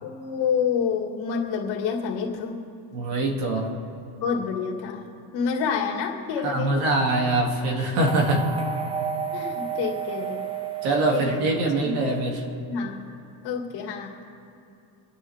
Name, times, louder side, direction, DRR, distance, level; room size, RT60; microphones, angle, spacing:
voice 1, 0.0-2.6 4.2-5.1 5.3-6.8 9.3-10.5 11.1-12.1 12.7-13.1 13.4-14.1, left 6 dB, 50° left, 0 dB, 2.5 m, -28 dB
voice 2, 2.9-3.8 6.4-8.5 10.8-12.4, right 2 dB, 90° right, -1 dB, 3.0 m, -23 dB
sound 1, 8.1-12.3, right 7 dB, 10° right, 0.8 m, -32 dB
26.5 x 10.0 x 3.7 m, 2.7 s
cardioid pair, 160°, 48 cm